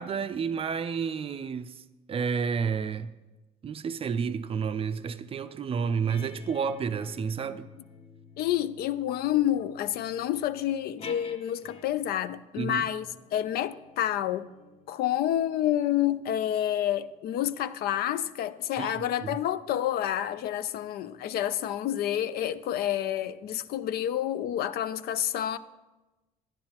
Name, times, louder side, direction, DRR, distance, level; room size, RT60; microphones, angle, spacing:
voice 1, 0.0-1.7 2.1-3.1 3.6-7.7 12.6-12.8 18.8-19.4, right 6 dB, 35° right, 0.4 m, -30 dB
sound 1, 5.8-12.2 13.0-17.9, left 4 dB, 35° left, 0.7 m, -51 dB
voice 2, 8.4-13.1 13.3-14.5 14.9-25.6, left 11 dB, 65° left, 0.4 m, -29 dB
10.5 x 10.5 x 2.9 m
cardioid pair, 110°, 17 cm